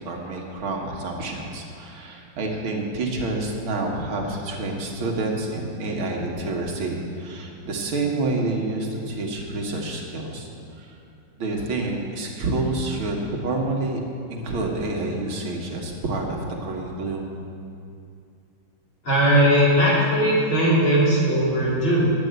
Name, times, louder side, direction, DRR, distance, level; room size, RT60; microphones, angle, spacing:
voice 1, 0.0-10.5 10.8-11.0 11.4-14.0 14.3-17.3, right 2 dB, 90° right, 0 dB, 2.3 m, -28 dB
voice 2, 19.0-22.1, equal, 80° left, -7 dB, 4.0 m, -19 dB
10.5 x 7.8 x 7.8 m, 2.5 s
omnidirectional pair, 2.2 m